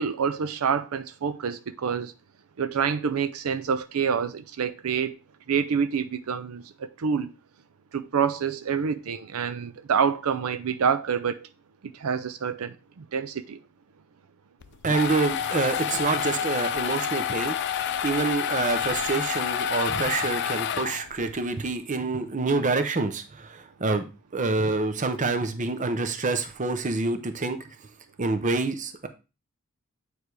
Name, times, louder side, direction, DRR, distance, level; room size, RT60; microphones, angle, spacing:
voice 1, 0.0-2.1 2.6-5.2 5.5-7.3 7.9-11.5 12.0-13.6, right 6 dB, 80° right, 0.5 m, -27 dB
sound 1, 14.6-21.3, left 8 dB, 50° left, 0.4 m, -28 dB
voice 2, 14.8-24.0 24.3-27.6 28.2-29.1, right 3 dB, 35° right, 0.7 m, -27 dB
8.8 x 3.3 x 4.7 m
head